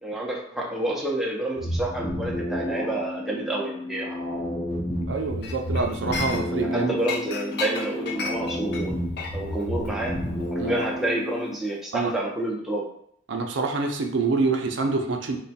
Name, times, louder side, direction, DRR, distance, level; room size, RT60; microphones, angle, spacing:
voice 1, 0.0-4.2 6.7-9.0 9.3-10.2 10.5-12.9, right 1 dB, ahead, -3 dB, 0.5 m, -29 dB
sound 1, 1.5-11.5, left 1 dB, 25° left, 0.8 m, -31 dB
voice 2, 5.1-6.9 10.6-10.8 11.9-12.1 13.3-15.4, right 3 dB, 60° right, 3 dB, 0.5 m, -26 dB
Chink clink, 5.4-6.7 7.0-11.6 11.9-12.2, left 4 dB, 50° left, 0.5 m, -35 dB
3.2 x 2.2 x 4.0 m, 0.71 s
head